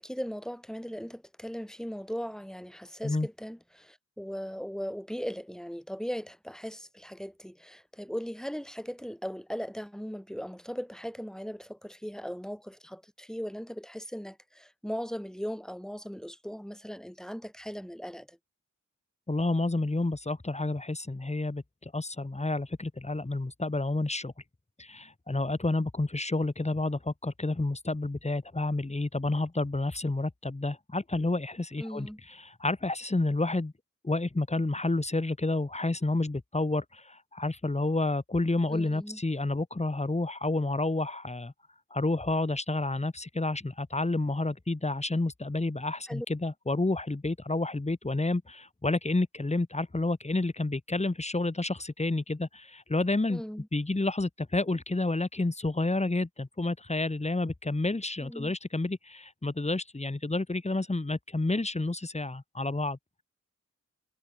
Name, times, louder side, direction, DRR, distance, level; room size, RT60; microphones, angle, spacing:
voice 1, 0.0-18.4 31.8-32.2 38.7-39.2 46.1-46.3 53.3-53.7 58.2-58.5, equal, ahead, 4.7 m, -38 dB
voice 2, 19.3-24.3 24.8-33.7 34.0-41.5 41.9-53.4 53.7-63.0, left 2 dB, 20° left, 1.7 m, -30 dB
wide cardioid pair, 95°, 30 cm